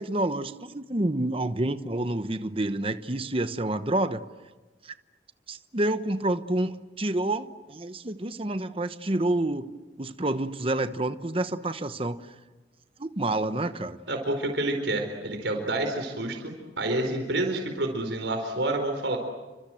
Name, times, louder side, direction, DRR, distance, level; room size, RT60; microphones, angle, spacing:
voice 1, 0.0-4.2 4.8-4.9 5.5-9.7 10.0-12.2 13.0-14.0, right 1 dB, 30° right, 10 dB, 1.0 m, -28 dB
voice 2, 14.1-19.2, right 2 dB, 80° right, 4 dB, 4.5 m, -28 dB
30.0 x 25.5 x 7.7 m, 1.2 s
head